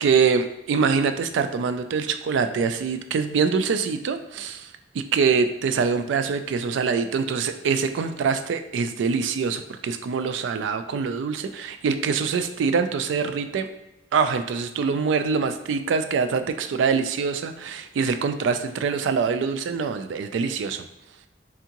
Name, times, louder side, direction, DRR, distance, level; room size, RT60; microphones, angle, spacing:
voice 1, 0.0-13.7 14.1-20.8, right 5 dB, 90° right, 9 dB, 0.3 m, -24 dB
3.5 x 3.5 x 2.9 m, 0.90 s
head